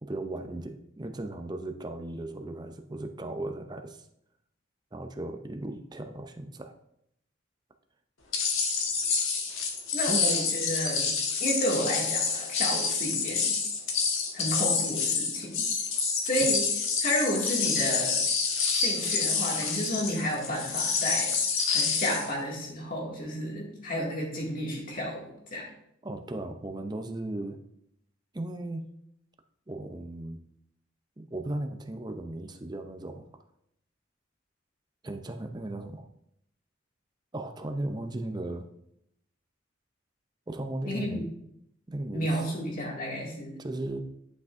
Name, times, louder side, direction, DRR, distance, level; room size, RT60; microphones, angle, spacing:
voice 1, 0.0-4.1 4.9-6.7 10.1-10.3 26.0-27.6 28.3-28.9 29.7-30.4 31.2-33.2 35.0-36.1 37.3-38.7 40.5-41.3 41.9-42.4 43.6-44.0, right 2 dB, 20° right, 6 dB, 0.6 m, -36 dB
sound 1, 8.3-22.3, left 5 dB, 80° left, 1.3 m, -28 dB
voice 2, 9.9-13.6 14.3-15.6 16.2-16.7 17.0-18.2 18.7-21.3 21.7-25.6 40.9-41.3 42.1-43.6, equal, 40° left, -2 dB, 2.2 m, -31 dB
10.5 x 5.9 x 2.6 m, 0.76 s
head